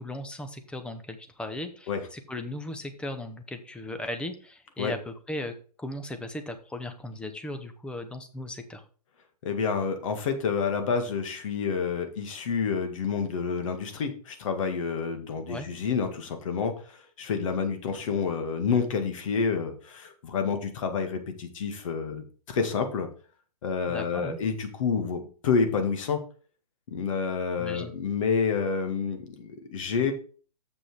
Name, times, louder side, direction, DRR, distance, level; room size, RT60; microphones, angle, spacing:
voice 1, 0.0-8.8 15.5-15.7 23.9-24.4 27.6-27.9, left 1 dB, 5° left, 8 dB, 0.8 m, -37 dB
voice 2, 9.4-23.1 23.6-26.2 26.9-30.1, left 5 dB, 50° left, 7 dB, 1.9 m, -29 dB
7.4 x 6.3 x 4.7 m, 0.40 s
hypercardioid pair, 130°, 21 cm